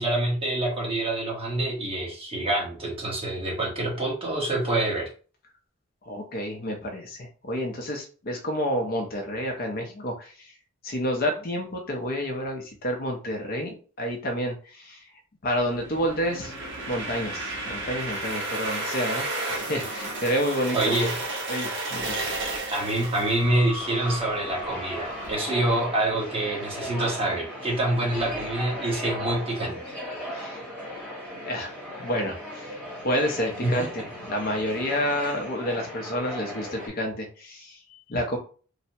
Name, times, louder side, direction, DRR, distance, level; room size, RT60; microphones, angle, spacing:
voice 1, 0.0-5.1 20.7-21.2 22.7-30.0 33.6-33.7, right 1 dB, 25° right, -3 dB, 1.0 m, -26 dB
voice 2, 6.1-10.5 10.8-15.0 15.4-16.5 16.9-20.9 21.5-22.2 30.3-30.6 31.4-31.7 32.0-38.4, equal, 40° left, 2 dB, 0.5 m, -29 dB
sound 1, 15.6-25.3, right 2 dB, 55° right, 0.8 m, -33 dB
sound 2, 23.8-36.9, equal, 5° right, 1.1 m, -37 dB
3.2 x 2.0 x 2.7 m, 0.38 s
head